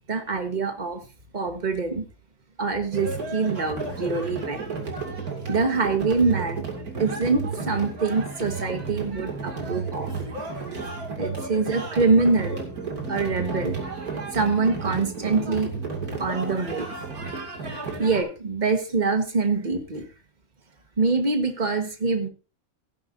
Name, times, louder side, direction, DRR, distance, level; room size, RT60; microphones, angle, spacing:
voice 1, 0.1-1.0 1.3-2.1 2.6-4.7 5.5-6.6 7.0-10.2 11.2-12.6 13.1-13.8 14.3-15.7 16.2-16.9 18.0-20.0 21.0-22.3, right 4 dB, 30° right, 6 dB, 1.6 m, -24 dB
sound 1, 2.9-18.2, right 4 dB, 85° right, 3.0 m, -32 dB
16.0 x 10.5 x 2.7 m, 0.32 s
omnidirectional pair, 1.5 m